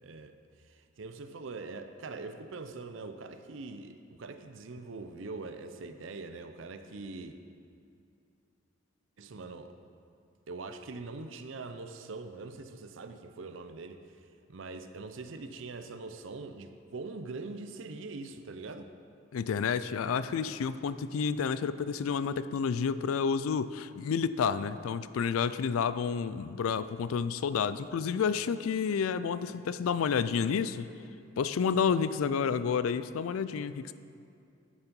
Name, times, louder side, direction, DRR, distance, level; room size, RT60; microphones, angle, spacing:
voice 1, 0.0-7.4 9.2-9.8 10.5-14.2 14.5-18.9, right 3 dB, 65° right, 8 dB, 0.6 m, -43 dB
voice 2, 19.3-30.9 31.4-33.9, left 6 dB, 90° left, 14 dB, 0.4 m, -30 dB
11.5 x 7.1 x 5.3 m, 2.5 s
head